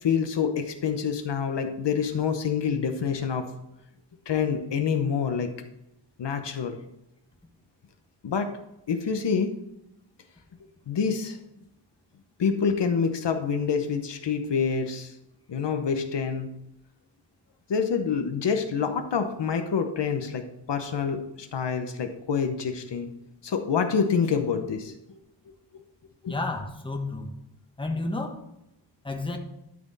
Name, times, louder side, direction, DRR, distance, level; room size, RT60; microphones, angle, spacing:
voice 1, 0.0-3.5 4.3-5.5 6.2-6.8 8.2-8.5 8.9-9.5 10.9-11.4 12.4-15.1 15.5-16.6 17.7-23.1 23.4-25.2 26.2-26.4, left 6 dB, 70° left, 6 dB, 0.9 m, -27 dB
voice 2, 26.3-27.3 27.8-28.4 29.0-29.4, left 2 dB, 10° left, 3 dB, 1.1 m, -31 dB
12.0 x 4.3 x 4.0 m, 0.85 s
wide cardioid pair, 125°, 44 cm